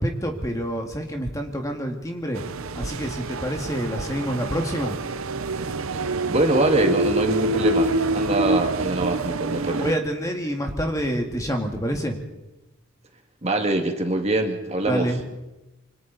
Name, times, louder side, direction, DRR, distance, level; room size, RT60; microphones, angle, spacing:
voice 1, 0.0-2.4 2.7-5.0 9.7-12.2 14.8-15.3, equal, 15° left, 3 dB, 2.0 m, -27 dB
sound 1, 2.3-9.9, right 2 dB, 70° right, 0.8 m, -26 dB
voice 2, 6.3-9.9 13.4-15.1, right 2 dB, 30° right, 4 dB, 2.0 m, -24 dB
27.5 x 25.0 x 4.1 m, 1.0 s
head